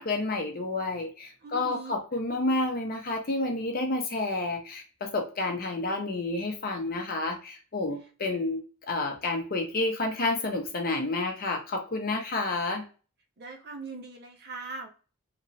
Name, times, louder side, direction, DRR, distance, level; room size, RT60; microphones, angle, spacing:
voice 1, 0.0-8.6 8.9-12.9, left 2 dB, 40° left, 3 dB, 0.6 m, -30 dB
voice 2, 1.4-1.9 13.4-14.9, right 4 dB, 50° right, 3 dB, 0.8 m, -40 dB
3.0 x 2.9 x 2.6 m, 0.35 s
head